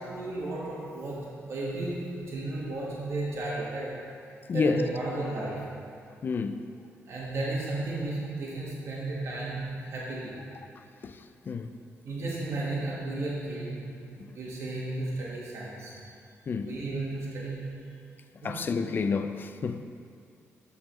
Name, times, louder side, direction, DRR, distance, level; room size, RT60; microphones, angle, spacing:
voice 1, 0.0-4.0 4.5-5.8 7.0-10.5 12.0-14.1 14.3-15.9 16.6-18.0 18.4-18.8, right 2 dB, 60° right, 1.3 m, -34 dB
voice 2, 4.5-4.8 6.2-6.6 11.0-11.2 11.5-11.7 16.5-16.7 18.4-19.8, left 5 dB, 40° left, 0.3 m, -29 dB
11.5 x 3.8 x 3.0 m
cardioid pair, 120°, 5 cm